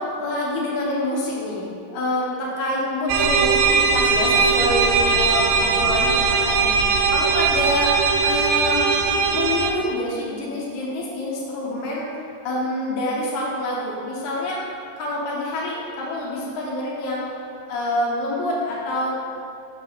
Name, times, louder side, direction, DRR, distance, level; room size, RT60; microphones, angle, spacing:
voice 1, 0.0-6.8 7.1-8.9 9.3-12.1 12.4-14.6 15.0-17.3 17.7-19.1, left 1 dB, 65° left, -5 dB, 2.0 m, -26 dB
sound 1, 3.1-9.7, right 5 dB, 85° right, 2.7 m, -19 dB
7.2 x 6.4 x 4.1 m, 2.5 s
omnidirectional pair, 4.8 m